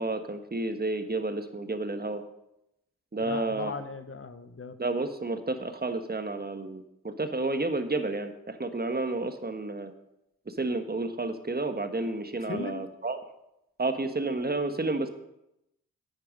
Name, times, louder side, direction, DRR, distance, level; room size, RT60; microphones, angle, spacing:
voice 1, 0.0-2.2 3.1-3.7 4.8-9.9 10.5-13.2 13.8-15.1, right 2 dB, 25° right, 8 dB, 1.3 m, -31 dB
voice 2, 3.2-4.8 12.5-12.9, left 4 dB, 40° left, 10 dB, 1.0 m, -38 dB
9.3 x 9.2 x 5.2 m, 0.85 s
supercardioid pair, 40°, 35 cm